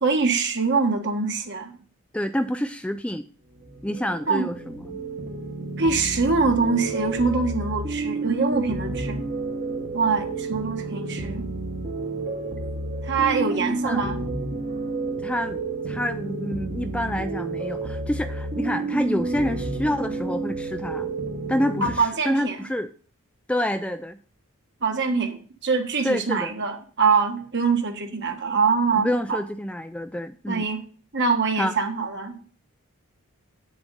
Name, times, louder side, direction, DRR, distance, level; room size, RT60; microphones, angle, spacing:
voice 1, 0.0-1.7 4.3-4.4 5.8-9.2 9.9-11.5 13.0-14.2 21.8-22.6 24.8-29.4 30.5-30.8 31.1-32.4, right 4 dB, 50° right, 1.4 m, -24 dB
voice 2, 2.1-3.3 3.8-5.0 13.4-14.0 15.2-21.1 21.5-22.9 23.5-24.2 26.0-26.5 28.9-30.7 31.6-31.7, equal, 5° left, 0.4 m, -28 dB
sound 1, 3.6-22.0, right 2 dB, 35° right, 1.0 m, -30 dB
8.6 x 7.1 x 5.3 m
head